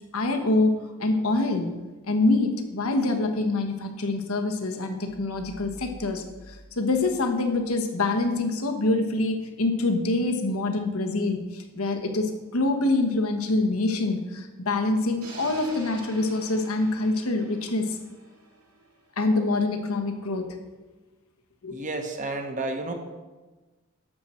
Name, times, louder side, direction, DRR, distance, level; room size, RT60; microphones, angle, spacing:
voice 1, 0.1-1.7 2.1-18.0 19.2-20.6 21.6-21.8, left 2 dB, 85° left, 5 dB, 1.2 m, -25 dB
sound 1, 5.1-8.0, equal, 20° right, 1.5 m, -49 dB
sound 2, 15.2-19.2, right 3 dB, 90° right, 2.3 m, -46 dB
voice 2, 21.7-22.9, right 2 dB, 35° right, 4 dB, 1.1 m, -31 dB
11.0 x 7.6 x 4.4 m, 1.2 s
head